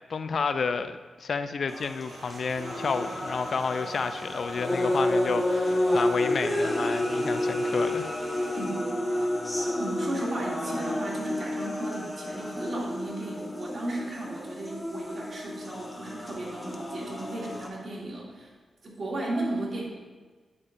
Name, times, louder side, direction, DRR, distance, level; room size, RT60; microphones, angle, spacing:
voice 1, 0.1-8.2, left 5 dB, 65° left, 10 dB, 0.4 m, -31 dB
sound 1, 1.7-17.7, left 1 dB, 15° left, 1.4 m, -30 dB
sound 2, 2.1-8.7, right 5 dB, 85° right, 0.5 m, -48 dB
voice 2, 8.6-9.3 9.6-18.5 18.8-19.8, right 1 dB, 60° right, -3 dB, 2.4 m, -35 dB
9.8 x 8.5 x 2.5 m, 1.4 s
cardioid pair, 60°, 0 cm